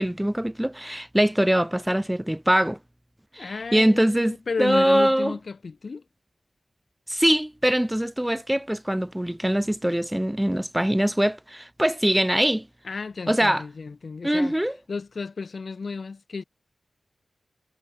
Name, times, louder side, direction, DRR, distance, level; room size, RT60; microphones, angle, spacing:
voice 1, 0.0-2.8 3.3-5.3 7.1-12.7 13.3-13.6 14.2-14.8, equal, 5° right, 3.0 m, -23 dB
voice 2, 3.4-6.0 12.8-14.6 14.9-16.4, left 4 dB, 60° left, 7.4 m, -33 dB
wide cardioid pair, 90°, 0 cm